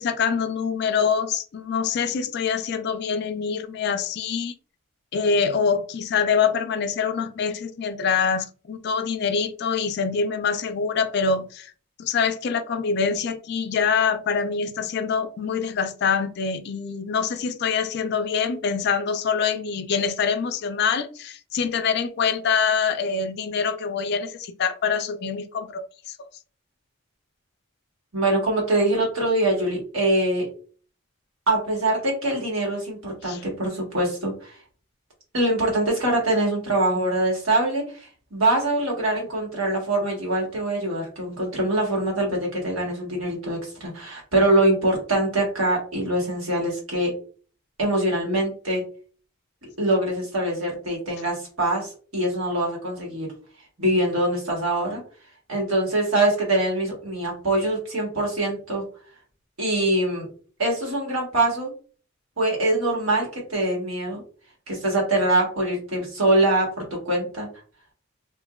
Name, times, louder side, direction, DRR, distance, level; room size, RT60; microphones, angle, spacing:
voice 1, 0.0-4.5 5.1-11.7 12.0-26.1 33.3-33.4, left 6 dB, 50° left, 0.3 m, -25 dB
voice 2, 28.1-30.5 31.5-34.6 35.3-47.1 47.8-48.8 49.8-53.3 53.8-55.0 55.5-58.8 59.6-60.3 60.6-61.7 62.4-64.2 64.7-67.5, right 1 dB, 85° right, 1.4 m, -23 dB
2.9 x 2.5 x 2.3 m
head